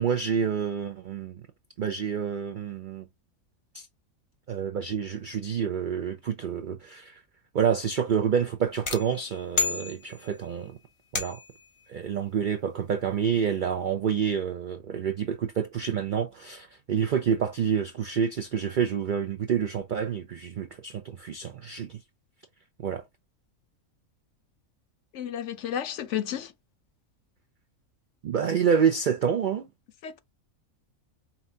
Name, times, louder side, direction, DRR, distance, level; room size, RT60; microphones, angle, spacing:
voice 1, 0.0-1.4 1.8-3.1 3.7-3.9 4.5-7.2 7.5-10.8 11.1-11.4 11.9-22.0 22.8-23.0 28.2-29.7, right 7 dB, 80° right, 0.4 m, -28 dB
sound 1, 8.9-10.5 11.1-11.7, left 5 dB, 30° left, 0.6 m, -31 dB
voice 2, 25.1-26.5 30.0-30.2, left 10 dB, 65° left, 0.8 m, -32 dB
5.6 x 2.4 x 2.6 m
omnidirectional pair, 1.5 m